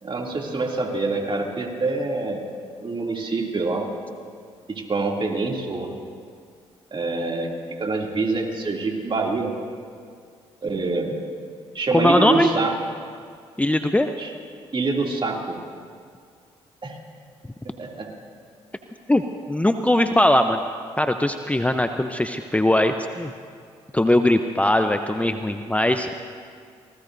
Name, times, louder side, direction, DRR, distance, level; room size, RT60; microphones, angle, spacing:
voice 1, 0.0-2.5 2.8-3.9 4.7-5.9 6.9-7.5 7.8-9.5 10.6-11.2 11.7-12.8 14.2-14.3 14.7-15.6 16.8-17.0 17.6-18.1, right 3 dB, 40° right, 0 dB, 2.7 m, -26 dB
voice 2, 11.9-12.5 13.6-14.1 19.1-20.6 21.0-23.3 23.9-26.1, left 1 dB, 10° left, 7 dB, 0.7 m, -20 dB
25.5 x 19.5 x 2.7 m, 2.1 s
supercardioid pair, 50°, 13 cm